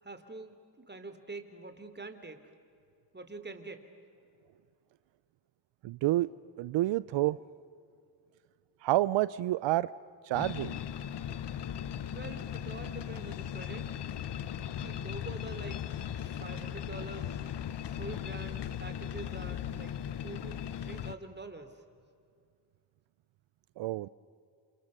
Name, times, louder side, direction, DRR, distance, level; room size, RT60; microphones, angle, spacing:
voice 1, 0.0-2.5 3.1-3.9 12.1-13.9 14.8-17.4 17.9-21.8, right 2 dB, 25° right, 8 dB, 3.6 m, -45 dB
voice 2, 5.8-6.3 6.6-7.4 8.8-9.9 10.2-10.7 23.8-24.1, right 16 dB, 90° right, 18 dB, 0.6 m, -28 dB
sound 1, 10.3-21.1, left 9 dB, 70° left, 1.0 m, -38 dB
28.5 x 28.0 x 6.6 m, 2.3 s
cardioid pair, 55°, 43 cm